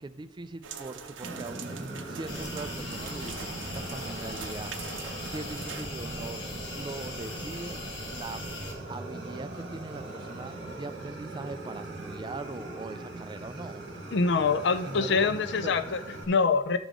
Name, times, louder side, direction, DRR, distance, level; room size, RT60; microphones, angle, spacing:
voice 1, 0.0-4.7 5.3-6.5 6.7-7.8 8.1-8.4 8.9-13.8 14.9-15.8, right 3 dB, 25° right, 12 dB, 0.4 m, -41 dB
sound 1, 0.6-5.9, right 6 dB, 80° right, 0.7 m, -43 dB
Fire, 1.2-16.2, right 2 dB, 60° right, 1.5 m, -40 dB
sound 2, 2.3-8.7, left 2 dB, 80° left, 1.6 m, -40 dB
voice 2, 14.1-16.8, left 4 dB, 65° left, 11 dB, 0.5 m, -25 dB
12.5 x 5.1 x 3.7 m, 1.0 s
head